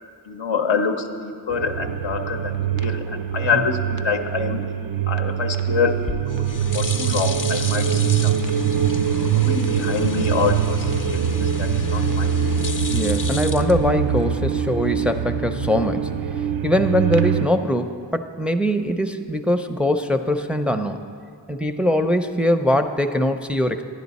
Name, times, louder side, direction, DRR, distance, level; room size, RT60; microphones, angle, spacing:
voice 1, 0.2-4.6 5.1-8.9 9.3-12.4, left 5 dB, 85° left, 4 dB, 0.7 m, -26 dB
sound 1, 1.5-17.5, right 8 dB, 85° right, 0.5 m, -23 dB
sound 2, 5.9-14.4, left 4 dB, 45° left, 0.7 m, -34 dB
voice 2, 12.9-16.1 16.6-21.1 21.5-23.8, left 1 dB, 5° right, 6 dB, 0.4 m, -22 dB
10.5 x 10.5 x 4.1 m, 2.2 s
wide cardioid pair, 40°, 45 cm